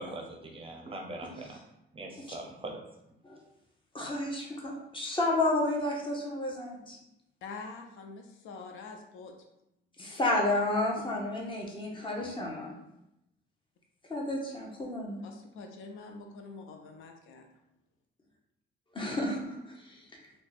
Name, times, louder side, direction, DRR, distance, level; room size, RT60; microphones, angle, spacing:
voice 1, 0.0-1.6 1.9-2.8, right 2 dB, 25° right, 1 dB, 0.6 m, -41 dB
voice 2, 1.2-1.6 2.2-2.4 3.2-3.4 3.9-7.0 10.0-12.8 14.1-15.2 18.9-20.0, left 2 dB, 25° left, -1 dB, 0.9 m, -31 dB
voice 3, 7.4-9.3 15.2-17.5, left 4 dB, 85° left, 4 dB, 0.5 m, -45 dB
2.6 x 2.3 x 4.0 m, 0.84 s
cardioid pair, 90°, 20 cm